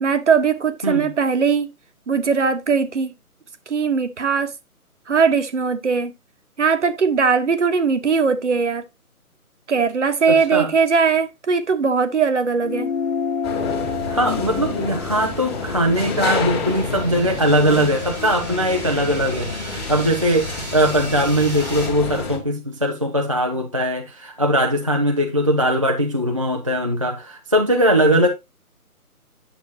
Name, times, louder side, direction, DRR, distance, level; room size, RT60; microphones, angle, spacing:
voice 1, 0.0-1.7 2.1-3.1 3.7-4.5 5.1-6.1 6.6-8.8 9.7-12.9, right 5 dB, 50° right, 1.3 m, -19 dB
voice 2, 10.3-10.7 14.1-28.3, equal, 25° right, 0.6 m, -20 dB
sound 1, 12.6-17.4, left 6 dB, 55° left, 0.9 m, -30 dB
sound 2, 12.9-21.9, right 1 dB, 5° right, 0.9 m, -38 dB
sound 3, 13.4-22.4, left 4 dB, 15° left, 1.8 m, -29 dB
9.4 x 6.9 x 2.8 m
figure-of-eight pair, 155°, 45 cm